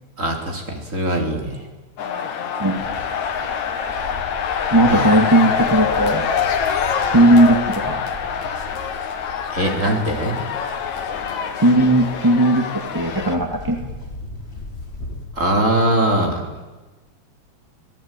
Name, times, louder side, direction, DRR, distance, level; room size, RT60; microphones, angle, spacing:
voice 1, 0.2-1.7 4.9-5.0 9.5-10.4 15.4-16.6, right 1 dB, 25° right, 2 dB, 4.1 m, -21 dB
sound 1, 2.0-13.4, left 7 dB, 70° left, 3.1 m, -25 dB
Livestock farm animals working animals, 2.8-15.2, left 2 dB, 20° left, 5.1 m, -38 dB
voice 2, 4.7-6.3 7.1-8.0 11.6-13.8, right 1 dB, 10° right, 3 dB, 2.0 m, -16 dB
26.0 x 18.5 x 9.2 m, 1.2 s
omnidirectional pair, 3.4 m